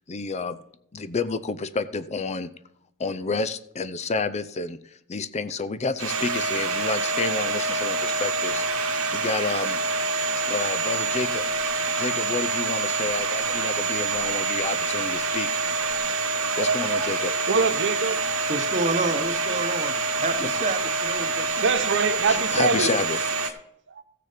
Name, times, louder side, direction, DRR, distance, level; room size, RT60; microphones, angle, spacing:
voice 1, 0.1-0.6 0.9-2.5 3.0-8.6 9.1-9.8 10.4-11.4 12.0-15.5 16.6-17.3 20.4-20.5 22.3-23.2 23.4-23.5, left 4 dB, 30° left, 13 dB, 0.5 m, -30 dB
Domestic sounds home sounds, 6.0-23.5, right 3 dB, 75° right, 1.5 m, -26 dB
voice 2, 16.6-18.3 21.6-22.9 23.9-24.0, right 4 dB, 60° right, 10 dB, 0.9 m, -25 dB
voice 3, 18.5-21.7, right 2 dB, 35° right, 8 dB, 1.1 m, -29 dB
15.0 x 6.8 x 5.0 m, 0.72 s
head